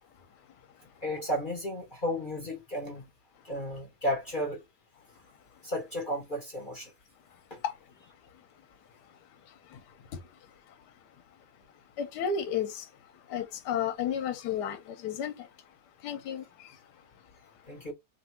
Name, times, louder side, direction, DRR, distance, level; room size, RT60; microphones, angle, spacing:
voice 1, 1.0-3.0 3.4-4.6 5.6-6.9 7.5-7.6 17.7-17.9, equal, 35° left, 0.8 m, -33 dB
voice 2, 12.0-12.9 13.3-15.5 16.0-16.7, left 7 dB, 65° left, 1.3 m, -32 dB
3.1 x 2.6 x 4.3 m
omnidirectional pair, 2.1 m